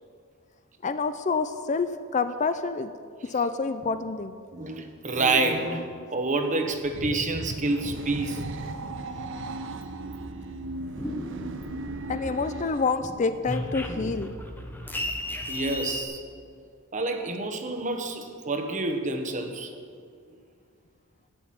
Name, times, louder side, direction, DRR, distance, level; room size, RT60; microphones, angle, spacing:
voice 1, 0.8-2.9 3.3-4.4 12.1-14.3, left 4 dB, 35° left, 11 dB, 0.4 m, -27 dB
voice 2, 4.5-8.4 15.5-16.2 16.9-19.7, right 2 dB, 35° right, 5 dB, 1.2 m, -28 dB
sound 1, 6.6-12.9, right 2 dB, 60° right, 0.8 m, -36 dB
sound 2, 10.6-12.3 12.7-16.0, left 1 dB, 10° left, 0.9 m, -35 dB
11.5 x 8.1 x 8.7 m, 2.2 s
head